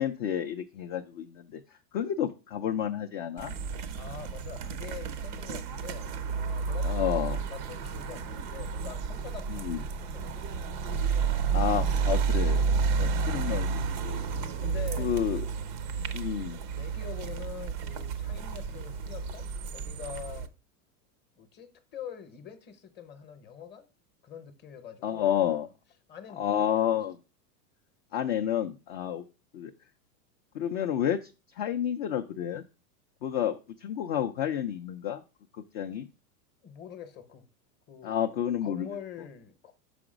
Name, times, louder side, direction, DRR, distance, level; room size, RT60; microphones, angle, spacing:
voice 1, 0.0-1.6 1.9-3.5 6.8-7.4 9.5-9.8 11.5-12.7 13.0-14.2 15.0-15.4 16.1-16.6 25.0-25.7 26.4-27.2 28.1-29.2 29.5-29.7 30.5-31.3 31.6-32.6 33.2-35.2 35.7-36.1 38.0-38.9, left 10 dB, 40° left, 0.4 m, -30 dB
sound 1, 3.4-20.5, right 5 dB, 35° right, 0.4 m, -31 dB
voice 2, 4.0-10.7 14.6-15.1 16.7-20.5 21.4-23.9 24.2-25.4 26.1-26.8 36.6-37.4 37.9-38.3 38.6-39.7, left 8 dB, 20° left, 0.8 m, -45 dB
6.1 x 4.9 x 4.9 m
supercardioid pair, 145°, 47 cm